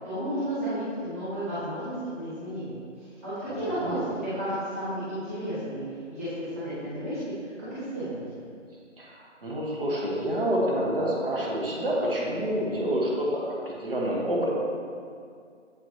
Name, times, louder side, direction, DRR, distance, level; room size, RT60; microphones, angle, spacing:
voice 1, 0.0-2.7 3.0-5.8 6.1-8.2, right 1 dB, 10° right, -15 dB, 1.0 m, -32 dB
voice 2, 3.5-4.0 9.0-9.1 9.4-14.5, equal, 45° right, -4 dB, 1.2 m, -28 dB
7.7 x 4.7 x 3.0 m, 2.2 s
figure-of-eight pair, 170°, 38 cm